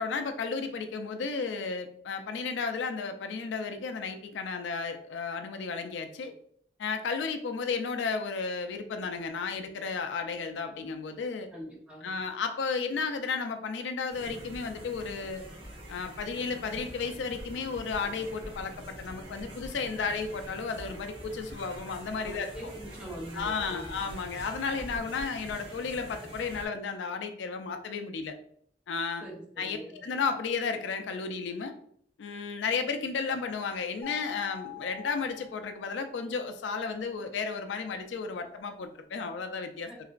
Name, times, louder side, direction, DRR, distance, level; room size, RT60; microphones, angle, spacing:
voice 1, 0.0-6.3 6.8-11.5 12.0-15.4 15.9-22.5 23.3-28.3 28.9-29.2 29.6-31.7 32.2-39.9, left 5 dB, 80° left, 6 dB, 0.4 m, -33 dB
voice 2, 11.5-12.1 22.2-24.0 29.2-30.0 39.9-40.0, right 1 dB, 5° right, -3 dB, 0.8 m, -43 dB
sound 1, 14.1-26.7, equal, 90° right, 1.2 m, -45 dB
sound 2, 34.0-36.3, left 18 dB, 35° left, 0.7 m, -44 dB
3.2 x 2.9 x 2.4 m, 0.63 s
head